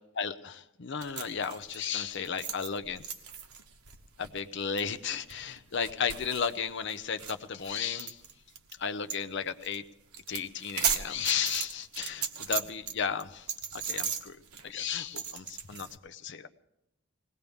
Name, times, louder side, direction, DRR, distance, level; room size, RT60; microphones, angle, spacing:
voice 1, 0.1-3.0 4.2-8.2 8.8-9.8 10.3-13.5 13.7-14.4 14.6-16.5, left 7 dB, 55° left, 10 dB, 0.7 m, -34 dB
sound 1, 1.0-8.7 9.1-9.2 9.5-9.8 10.1-12.9 13.2-15.9, right 7 dB, 80° right, 1.2 m, -36 dB
20.5 x 18.0 x 3.5 m, 0.86 s
head